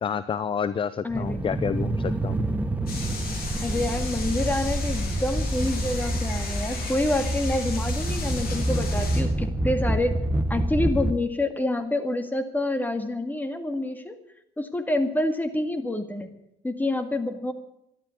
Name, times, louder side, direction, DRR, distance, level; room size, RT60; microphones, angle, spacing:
voice 1, 0.0-2.4, left 7 dB, 30° left, 15 dB, 0.6 m, -29 dB
voice 2, 1.0-1.4 3.6-10.2 10.5-14.2 14.6-16.3 16.6-17.5, left 1 dB, 10° left, 8 dB, 2.0 m, -27 dB
sound 1, 1.1-11.1, right 1 dB, 10° right, 1.1 m, -27 dB
Bees on a huge kiwi plant, 2.9-9.2, left 4 dB, 60° left, 6.5 m, -36 dB
12.5 x 12.0 x 9.6 m, 0.81 s
cardioid pair, 110°, 17 cm